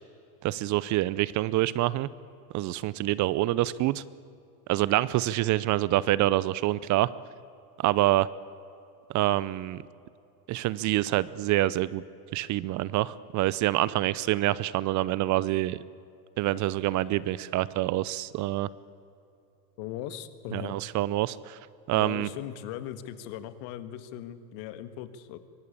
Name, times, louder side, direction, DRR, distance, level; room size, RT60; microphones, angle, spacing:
voice 1, 0.4-2.1 2.5-4.0 4.7-7.1 7.8-8.3 9.1-9.8 10.5-12.0 12.3-15.8 16.4-18.7 20.5-21.6 21.9-22.3, right 16 dB, 35° right, 19 dB, 0.6 m, -26 dB
voice 2, 19.8-20.8 21.9-25.4, left 11 dB, 55° left, 12 dB, 1.8 m, -39 dB
23.5 x 19.0 x 8.6 m, 2.7 s
hypercardioid pair, 110°, 49 cm